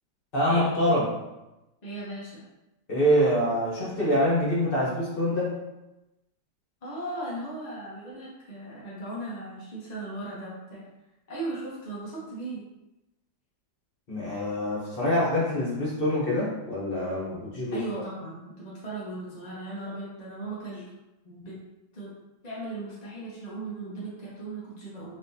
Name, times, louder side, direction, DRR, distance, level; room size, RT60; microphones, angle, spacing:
voice 1, 0.3-1.1 2.9-5.6 14.1-17.8, equal, 35° left, -6 dB, 1.0 m, -25 dB
voice 2, 1.8-2.4 6.8-10.8 11.3-12.6 17.7-20.9 21.2-21.6 21.9-22.1 22.4-25.2, right 2 dB, 50° left, -7 dB, 0.4 m, -37 dB
4.1 x 3.2 x 2.7 m, 0.98 s
omnidirectional pair, 2.2 m